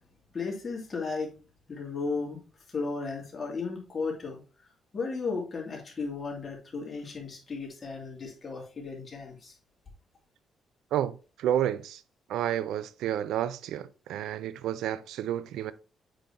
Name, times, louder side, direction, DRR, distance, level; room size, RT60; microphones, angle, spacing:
voice 1, 0.3-1.3 1.7-2.4 2.7-4.4 4.9-9.6, left 4 dB, 35° left, 2.6 m, -35 dB
voice 2, 10.9-12.0 12.3-15.7, right 11 dB, 85° right, 0.4 m, -30 dB
7.6 x 5.2 x 2.9 m
cardioid pair, 90°, 0 cm